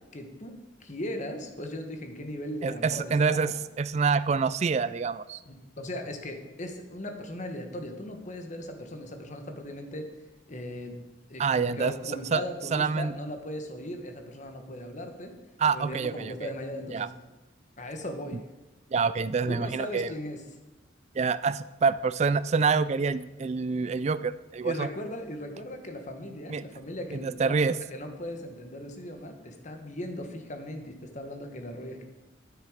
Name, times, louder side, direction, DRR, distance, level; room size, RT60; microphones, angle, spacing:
voice 1, 0.1-0.5 0.8-3.5 5.4-10.1 10.5-11.0 11.3-15.3 15.7-17.1 17.8-18.4 19.5-20.4 24.6-32.0, left 1 dB, 40° left, 5 dB, 1.3 m, -38 dB
voice 2, 2.6-5.4 11.4-11.9 12.3-12.4 12.7-13.1 15.6-16.3 16.9-17.1 18.9-20.1 21.2-24.9 26.5-26.6 27.1-27.8, right 5 dB, 35° right, 15 dB, 0.3 m, -26 dB
9.7 x 9.3 x 5.1 m, 1.1 s
head